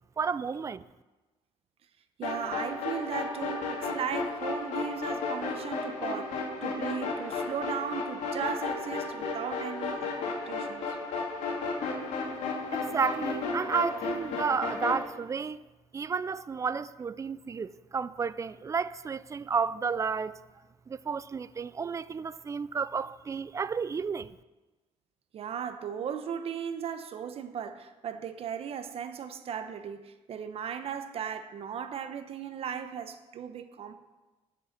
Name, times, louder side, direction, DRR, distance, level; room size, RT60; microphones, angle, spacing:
voice 1, 0.2-0.8 12.7-15.6 15.9-20.4 20.9-24.4, right 5 dB, 25° right, 0.4 m, -32 dB
sound 1, 2.2-15.0, left 4 dB, 80° left, 2.3 m, -33 dB
voice 2, 2.2-10.8 25.3-33.9, right 8 dB, 55° right, 0.8 m, -37 dB
7.6 x 6.7 x 8.2 m
cardioid pair, 110°, 12 cm